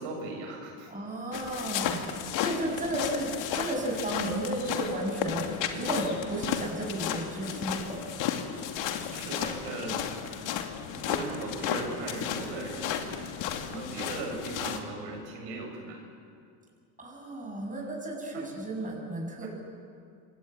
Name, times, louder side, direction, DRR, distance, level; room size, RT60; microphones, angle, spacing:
voice 1, 0.0-0.9 9.1-10.0 10.9-13.1 13.6-16.0 18.3-18.4 19.4-19.5, right 2 dB, 80° right, 1 dB, 7.9 m, -38 dB
voice 2, 0.9-8.1 17.0-19.5, right 1 dB, 15° right, 0 dB, 7.3 m, -33 dB
sound 1, 1.3-14.8, left 9 dB, 60° left, 2.7 m, -33 dB
27.0 x 19.0 x 9.4 m, 2.3 s
supercardioid pair, 110°, 50 cm